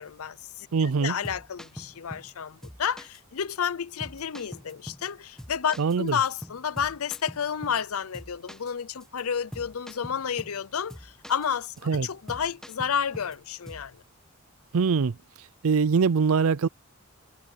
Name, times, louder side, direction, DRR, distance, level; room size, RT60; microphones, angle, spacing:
voice 1, 0.0-11.7 12.0-14.0, left 7 dB, 85° left, 0.6 m, -31 dB
voice 2, 0.7-1.2 5.8-6.1 11.9-12.1 14.7-15.1 15.6-16.7, right 5 dB, 75° right, 0.5 m, -23 dB
sound 1, 1.2-2.3 2.6-3.2 3.5-3.6 4.0-5.1 5.4-7.9 8.1-8.7 9.0-9.2 9.5-10.6 10.9-11.5 11.8-13.4 13.7-13.9, equal, 5° left, 1.1 m, -43 dB
head